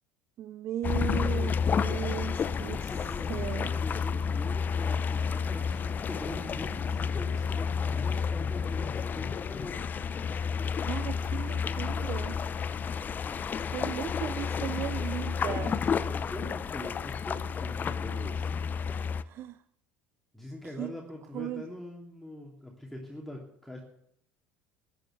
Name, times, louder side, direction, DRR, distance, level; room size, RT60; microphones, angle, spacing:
voice 1, 0.4-2.9 3.3-3.7 10.9-12.4 13.7-15.8 19.2-19.6 20.8-20.9 21.3-21.6, right 12 dB, 50° right, 0.5 m, -36 dB
sound 1, 0.8-19.2, left 6 dB, 35° left, 0.7 m, -31 dB
voice 2, 1.0-1.8 2.7-10.0 15.6-18.5 20.3-23.8, left 1 dB, 5° left, 2.9 m, -43 dB
13.0 x 9.2 x 9.1 m
hypercardioid pair, 80°, 5 cm